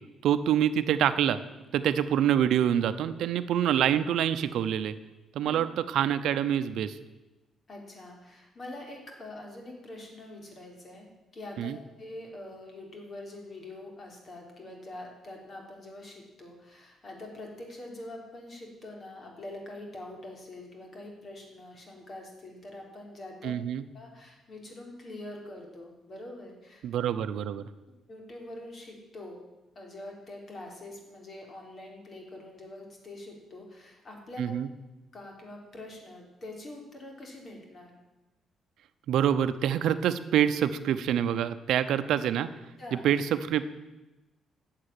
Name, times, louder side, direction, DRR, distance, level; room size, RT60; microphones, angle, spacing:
voice 1, 0.2-1.4 1.7-4.9 5.3-7.0 11.6-11.8 23.4-23.8 26.8-27.6 34.4-34.7 39.1-42.5 42.9-43.7, right 10 dB, 80° right, 12 dB, 0.8 m, -26 dB
voice 2, 7.7-23.6 23.9-27.1 28.1-29.4 29.8-34.6 35.1-37.9 42.8-43.1, left 1 dB, 45° left, 1 dB, 3.7 m, -44 dB
11.5 x 7.6 x 9.1 m, 1.1 s
cardioid pair, 90°, 0 cm